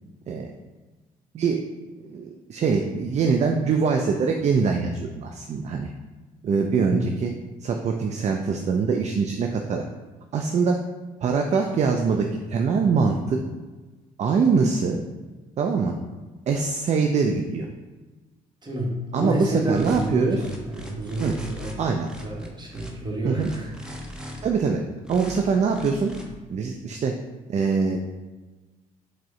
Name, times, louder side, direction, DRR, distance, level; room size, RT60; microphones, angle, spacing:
voice 1, 2.0-5.9 6.4-7.3 7.6-9.8 10.3-10.8 11.2-13.4 14.2-15.0 15.6-15.9 16.5-17.7 19.1-20.4 21.2-21.3 21.8-22.1 23.2-23.5 24.4-24.8 25.1-26.1 26.5-27.1 27.5-28.0, right 5 dB, 40° right, 4 dB, 0.4 m, -23 dB
voice 2, 6.7-7.1 18.6-23.7, equal, 25° right, -2 dB, 1.1 m, -30 dB
sound 1, 19.7-20.1 20.4-21.7 22.0-22.9 23.4-24.4 25.0-25.4 25.7-26.2, equal, 5° right, 0.7 m, -39 dB
4.8 x 2.1 x 3.6 m, 1.2 s
hypercardioid pair, 55°, 18 cm